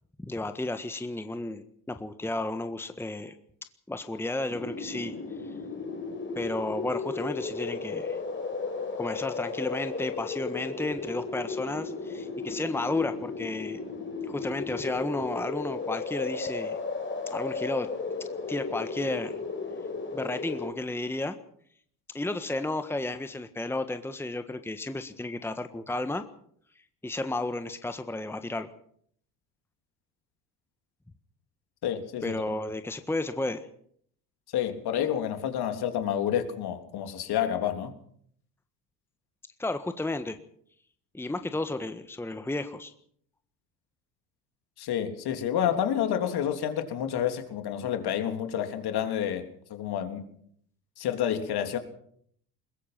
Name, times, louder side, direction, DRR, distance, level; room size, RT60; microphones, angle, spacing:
voice 1, 0.2-3.3 3.9-5.1 6.3-8.2 9.0-13.8 14.3-16.8 17.3-17.9 18.5-19.4 20.1-21.4 22.1-26.2 27.0-28.7 32.2-33.7 39.6-40.4 41.1-42.9, left 2 dB, 5° left, 9 dB, 1.5 m, -32 dB
sound 1, 4.5-20.7, left 4 dB, 25° left, 5.0 m, -35 dB
voice 2, 31.8-32.4 34.5-37.9 44.8-49.4 49.7-50.3 51.0-51.8, left 9 dB, 50° left, 7 dB, 3.5 m, -29 dB
21.5 x 21.5 x 5.9 m, 0.64 s
hypercardioid pair, 70°, 47 cm